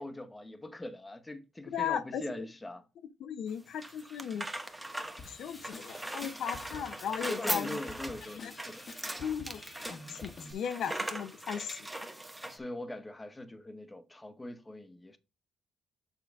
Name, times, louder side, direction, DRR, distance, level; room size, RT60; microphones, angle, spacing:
voice 1, 0.0-2.8 7.3-8.9 12.4-15.2, left 1 dB, 15° left, 1.0 m, -42 dB
voice 2, 1.7-2.2 3.2-4.5 5.2-7.8 8.3-8.5 9.2-9.6 9.9-11.9, left 8 dB, 70° left, 0.7 m, -36 dB
sound 1, 3.5-12.6, right 1 dB, 10° right, 1.1 m, -40 dB
Drum kit / Drum, 5.2-10.5, left 4 dB, 50° left, 1.2 m, -49 dB
7.3 x 3.8 x 4.6 m
cardioid pair, 90°, 0 cm